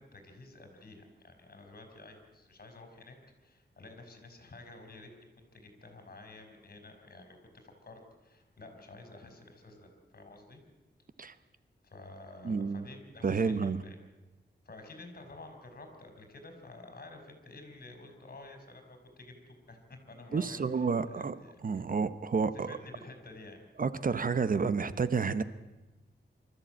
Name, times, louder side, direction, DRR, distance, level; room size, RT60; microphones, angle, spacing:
voice 1, 0.0-5.1 5.4-10.6 11.8-14.0 14.6-21.8 22.5-23.6, left 2 dB, 55° left, 5 dB, 4.6 m, -51 dB
voice 2, 12.4-12.8 13.2-13.8 20.3-21.3 21.6-22.8 23.8-25.4, right 5 dB, 50° right, 14 dB, 0.8 m, -30 dB
24.5 x 14.0 x 8.9 m, 1.1 s
wide cardioid pair, 125°, 19 cm